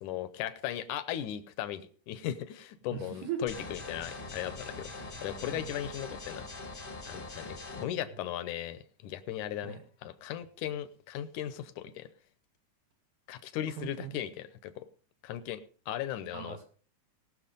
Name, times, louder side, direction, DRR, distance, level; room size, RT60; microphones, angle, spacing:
voice 1, 0.0-6.5 7.1-12.1 13.3-14.7 15.2-15.6 15.9-16.6, left 11 dB, 75° left, 13 dB, 2.2 m, -37 dB
voice 2, 2.9-3.4 5.5-5.7 9.6-9.8 13.8-14.2 16.3-16.6, right 8 dB, 70° right, 2 dB, 3.1 m, -39 dB
sound 1, 3.5-7.9, left 3 dB, 30° left, 0.9 m, -43 dB
19.5 x 6.6 x 5.2 m, 0.43 s
omnidirectional pair, 3.8 m